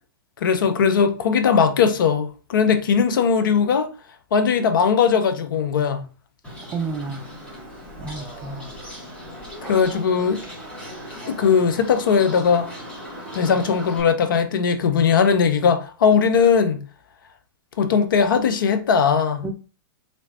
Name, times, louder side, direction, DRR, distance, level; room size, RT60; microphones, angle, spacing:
voice 1, 0.4-3.9 4.3-6.0 9.6-10.4 11.3-12.7 13.3-16.8 17.8-19.4, left 6 dB, 65° left, 0.6 m, -19 dB
Bird, 6.4-14.0, equal, 10° left, 1.5 m, -38 dB
voice 2, 6.7-7.3 8.0-8.7 9.6-9.9 19.4-19.5, right 4 dB, 15° right, 0.4 m, -31 dB
3.1 x 2.9 x 2.8 m
figure-of-eight pair, 105°, 12 cm